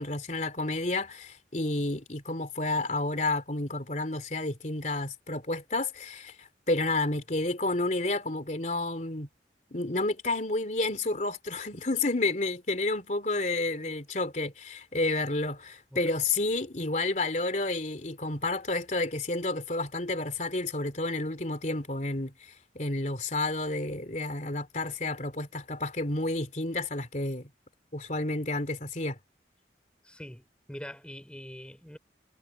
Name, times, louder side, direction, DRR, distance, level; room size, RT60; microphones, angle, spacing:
voice 1, 0.0-9.3 9.7-27.5 27.9-29.2, left 2 dB, 45° left, 3.3 m, -30 dB
voice 2, 30.0-32.0, equal, 5° left, 4.3 m, -44 dB
head